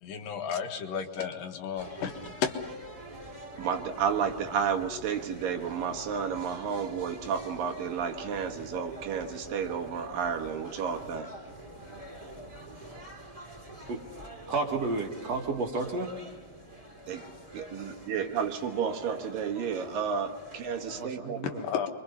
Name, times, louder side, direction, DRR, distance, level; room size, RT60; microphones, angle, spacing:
voice 1, 0.0-2.5 21.4-21.9, left 7 dB, 70° left, 4 dB, 3.2 m, -33 dB
sound 1, 1.8-21.0, right 1 dB, 10° right, 3.1 m, -45 dB
voice 2, 3.6-11.3 17.1-17.2 17.5-21.4, right 7 dB, 70° right, 4 dB, 3.1 m, -31 dB
voice 3, 14.5-16.1 20.9-21.7, right 3 dB, 50° right, 2 dB, 2.9 m, -31 dB
28.0 x 24.0 x 5.6 m, 1.2 s
omnidirectional pair, 4.2 m